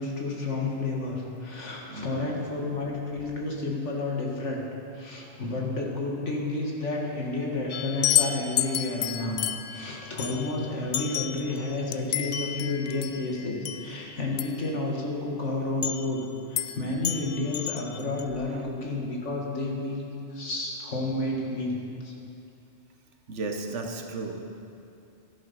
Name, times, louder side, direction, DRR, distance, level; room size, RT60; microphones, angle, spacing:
voice 1, 0.0-4.6 4.9-9.4 9.7-20.0 20.3-21.8 22.0-22.1, left 2 dB, 90° left, -2 dB, 2.2 m, -31 dB
voice 2, 1.9-2.3 18.3-18.7 23.3-24.7, right 3 dB, 85° right, 5 dB, 1.4 m, -36 dB
sound 1, 7.7-14.7 15.8-16.2 16.6-16.8 17.0-18.2, left 11 dB, 65° left, 0.7 m, -31 dB
13.0 x 10.5 x 5.6 m, 2.7 s
omnidirectional pair, 1.2 m